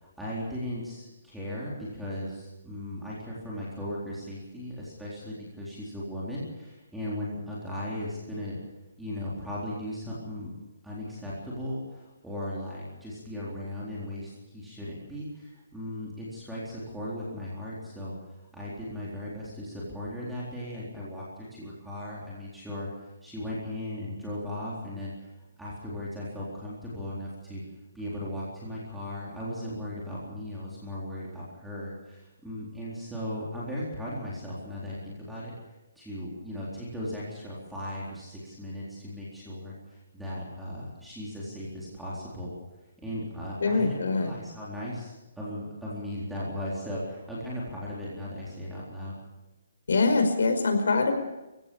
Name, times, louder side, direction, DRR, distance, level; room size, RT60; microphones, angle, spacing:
voice 1, 0.0-8.6 9.0-10.5 10.8-18.2 18.5-21.3 21.5-22.9 23.2-25.3 25.6-27.6 27.9-35.6 36.0-42.6 43.0-49.1, left 1 dB, ahead, -8 dB, 4.0 m, -37 dB
voice 2, 43.6-44.3 49.9-51.1, left 3 dB, 80° left, 6 dB, 5.0 m, -23 dB
24.0 x 16.0 x 7.1 m, 1.0 s
hypercardioid pair, 175°, 0 cm